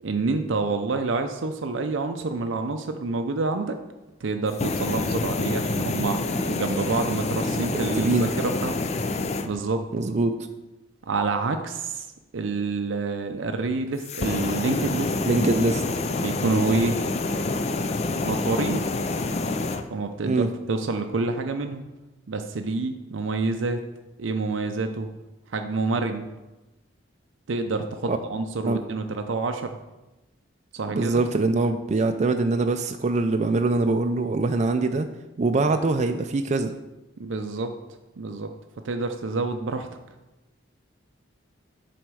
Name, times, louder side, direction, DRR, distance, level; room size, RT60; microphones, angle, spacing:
voice 1, 0.0-3.8 4.2-6.2 6.4-8.8 9.4-9.8 11.1-12.1 12.3-15.1 16.2-17.0 18.1-18.8 19.9-21.8 22.3-23.8 24.2-25.1 25.5-26.3 27.5-29.8 30.7-31.2 37.2-37.7 38.2-38.5 38.8-39.9, right 3 dB, 90° right, 6 dB, 0.5 m, -27 dB
sound 1, 4.5-9.5 14.0-19.8, left 3 dB, 35° left, 0.5 m, -27 dB
voice 2, 9.9-10.3 15.2-15.8 20.2-20.5 28.1-28.2 28.6-28.8 30.9-35.1 35.4-36.7, right 3 dB, 40° right, 6 dB, 0.4 m, -23 dB
8.0 x 4.3 x 6.2 m, 1.0 s
head